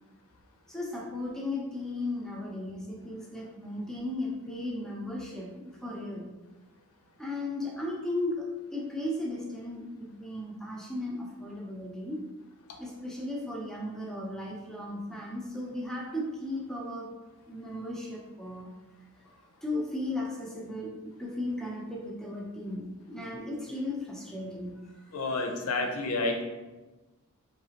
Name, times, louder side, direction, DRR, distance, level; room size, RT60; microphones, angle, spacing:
voice 1, 0.7-6.3 7.2-12.2 12.8-17.1 17.5-18.7 19.6-24.7, left 1 dB, 5° left, -3 dB, 0.6 m, -36 dB
voice 2, 25.1-26.4, left 2 dB, 85° left, 3 dB, 0.6 m, -29 dB
4.8 x 2.9 x 2.8 m, 1.1 s
head